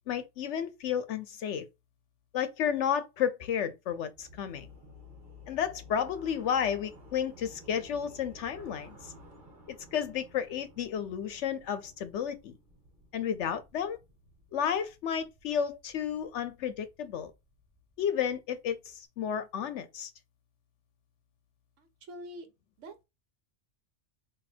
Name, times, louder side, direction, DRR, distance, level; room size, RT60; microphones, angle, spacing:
voice 1, 0.1-1.7 2.3-4.7 5.5-9.1 9.7-12.6 13.1-14.0 14.5-17.3 18.0-20.1, left 8 dB, 75° left, 0.9 m, -32 dB
sound 1, 4.1-19.0, left 1 dB, 40° right, 1.6 m, -55 dB
voice 2, 21.8-22.5 22.8-23.0, equal, 80° right, 1.2 m, -45 dB
4.1 x 2.6 x 4.3 m
omnidirectional pair, 1.3 m